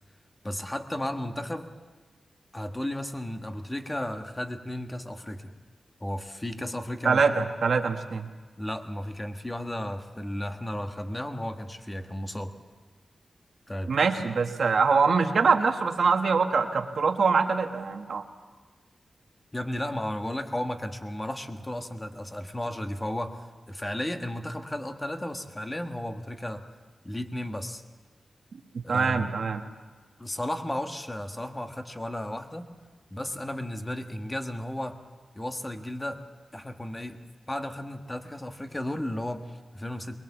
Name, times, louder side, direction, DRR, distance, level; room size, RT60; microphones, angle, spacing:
voice 1, 0.4-1.7 2.5-5.5 6.0-7.5 8.5-12.5 13.7-14.1 19.5-26.6 27.0-27.8 28.8-29.3 30.2-32.7 33.1-35.0 35.3-36.2 36.5-37.2 37.5-40.2, left 1 dB, 15° left, 6 dB, 1.4 m, -34 dB
voice 2, 7.0-8.3 13.9-18.2 28.9-29.6, right 5 dB, 70° right, 5 dB, 1.4 m, -24 dB
22.0 x 22.0 x 7.2 m, 1.4 s
wide cardioid pair, 100°, 0 cm